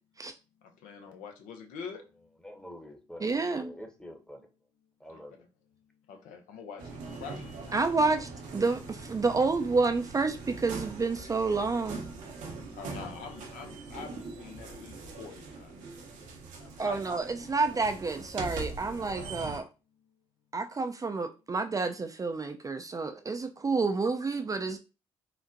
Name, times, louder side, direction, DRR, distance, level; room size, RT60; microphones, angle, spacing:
voice 1, 0.6-2.0 5.1-5.2 6.1-7.8 8.1-8.3 12.7-15.7 16.6-17.0, left 6 dB, 75° left, 0.6 m, -45 dB
voice 2, 2.4-4.5 5.0-5.4, equal, 5° left, 0.8 m, -46 dB
voice 3, 3.2-3.7 7.7-12.0 16.8-19.7 20.5-24.8, right 4 dB, 25° right, 0.4 m, -29 dB
sound 1, 6.8-19.6, right 3 dB, 70° right, 0.8 m, -42 dB
3.9 x 2.1 x 2.5 m
hypercardioid pair, 55°, 13 cm